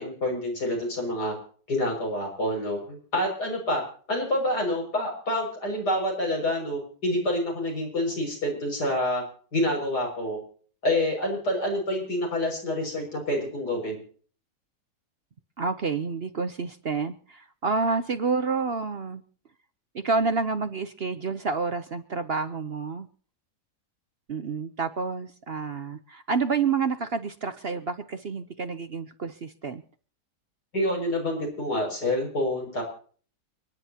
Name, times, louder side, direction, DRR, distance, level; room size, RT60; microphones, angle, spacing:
voice 1, 0.0-1.4 1.7-3.8 4.1-9.2 9.5-10.4 10.8-14.0 30.7-32.8, left 1 dB, 80° left, 0 dB, 6.8 m, -27 dB
voice 2, 15.6-19.2 19.9-23.1 24.3-29.8, right 4 dB, 45° right, 10 dB, 0.9 m, -29 dB
29.5 x 10.5 x 2.9 m, 0.43 s
omnidirectional pair, 1.7 m